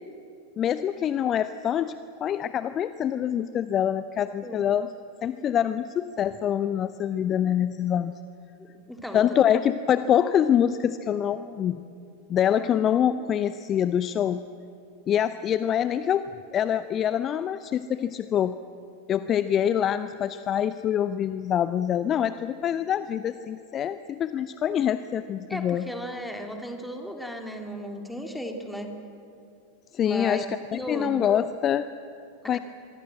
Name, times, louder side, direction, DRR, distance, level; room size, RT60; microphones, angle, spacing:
voice 1, 0.6-4.9 5.2-8.1 9.1-11.9 12.3-14.4 15.1-18.6 19.1-25.9 29.9-30.5 30.7-31.9 32.5-32.6, left 9 dB, 30° left, 14 dB, 0.6 m, -25 dB
voice 2, 4.4-4.8 8.6-9.3 25.5-29.0 30.0-30.4 30.7-31.1 32.4-32.6, equal, ahead, 3 dB, 2.7 m, -35 dB
25.0 x 22.0 x 7.6 m, 2.6 s
figure-of-eight pair, 90°, 0 cm